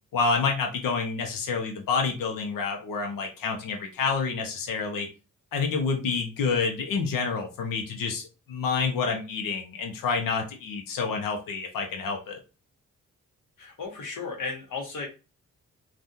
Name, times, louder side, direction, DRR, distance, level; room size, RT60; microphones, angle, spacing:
voice 1, 0.1-5.1 5.5-8.2 8.5-12.4, left 5 dB, 90° left, 2 dB, 0.7 m, -28 dB
voice 2, 13.6-15.1, left 4 dB, 70° left, 1 dB, 1.3 m, -34 dB
3.4 x 2.4 x 2.7 m, 0.30 s
cardioid pair, 75°, 32 cm